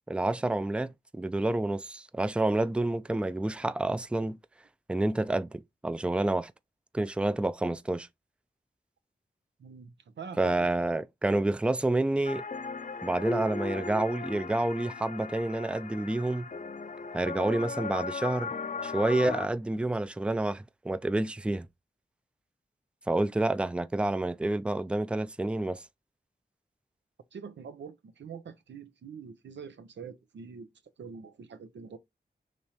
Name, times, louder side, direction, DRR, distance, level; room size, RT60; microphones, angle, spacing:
voice 1, 0.1-4.4 4.9-6.5 6.9-8.1 10.4-12.4 13.0-16.5 17.1-18.5 18.8-21.7 23.1-25.8, right 2 dB, 5° right, 0.4 m, -29 dB
voice 2, 9.6-10.7 27.3-30.7 31.0-32.0, right 6 dB, 85° right, 0.6 m, -44 dB
sound 1, 12.2-19.5, left 4 dB, 45° left, 0.5 m, -37 dB
5.1 x 3.1 x 2.8 m
cardioid pair, 40°, 18 cm